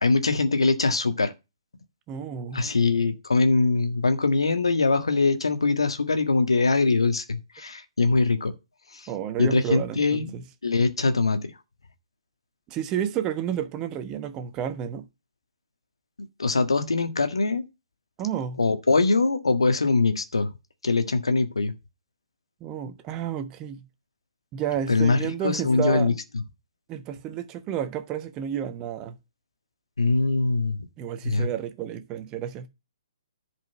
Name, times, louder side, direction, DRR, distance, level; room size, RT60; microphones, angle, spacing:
voice 1, 0.0-1.3 2.5-8.5 9.4-10.3 10.6-11.4 16.4-17.6 18.6-20.5 20.8-21.7 24.9-26.1 30.0-30.8 31.2-31.5, left 3 dB, 75° left, 1.6 m, -22 dB
voice 2, 2.1-2.6 9.1-10.4 12.7-15.0 18.2-18.6 22.6-23.8 24.5-26.1 26.9-29.2 31.0-32.7, right 9 dB, 25° right, 1.2 m, -31 dB
11.0 x 5.2 x 5.6 m
figure-of-eight pair, 130°, 3 cm